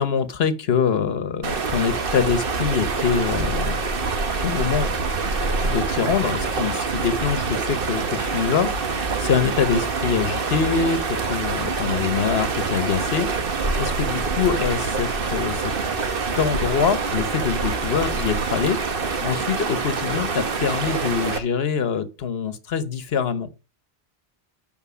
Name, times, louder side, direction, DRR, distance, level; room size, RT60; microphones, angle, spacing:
voice 1, 0.0-3.8 4.4-5.0 5.6-15.7 16.4-23.5, left 6 dB, 75° left, 1.2 m, -24 dB
sound 1, 1.4-21.4, right 4 dB, 60° right, 1.3 m, -25 dB
11.5 x 4.5 x 6.2 m
omnidirectional pair, 1.1 m